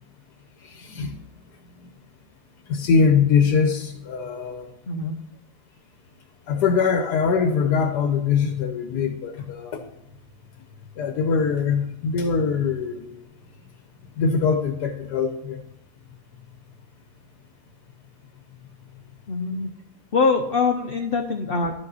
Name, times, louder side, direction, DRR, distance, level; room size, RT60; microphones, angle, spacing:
voice 1, 0.6-1.2 1.7-1.9 2.7-4.7 6.5-9.8 11.0-13.2 14.2-15.6, left 5 dB, 85° left, 5 dB, 1.4 m, -22 dB
voice 2, 19.3-19.7 20.1-21.7, left 4 dB, 50° left, 4 dB, 0.7 m, -23 dB
11.5 x 5.4 x 4.1 m, 0.85 s
omnidirectional pair, 1.7 m